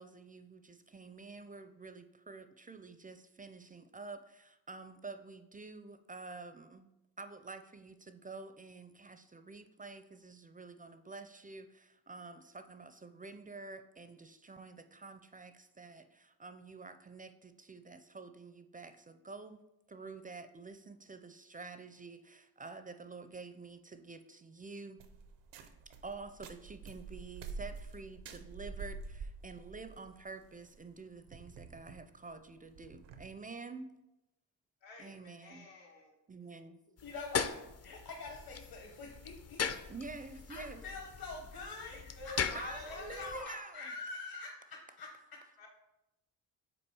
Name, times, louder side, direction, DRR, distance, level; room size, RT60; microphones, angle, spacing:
voice 1, 0.0-6.9 7.2-19.6 19.9-25.0 26.0-34.0 35.0-35.7 36.3-36.8 39.9-40.8 42.5-43.9, right 3 dB, 20° right, 10 dB, 0.4 m, -48 dB
sound 1, 25.0-33.3, right 4 dB, 85° right, 0.7 m, -48 dB
voice 2, 34.8-36.1 41.8-43.6 45.6-45.7, left 3 dB, 85° left, -1 dB, 1.6 m, -47 dB
voice 3, 37.0-37.6 37.8-39.6 40.5-45.1, left 3 dB, 55° left, 0 dB, 1.1 m, -46 dB
sound 2, 37.0-43.4, left 7 dB, 35° left, 0.5 m, -40 dB
6.0 x 4.0 x 4.7 m, 0.94 s
cardioid pair, 65°, 43 cm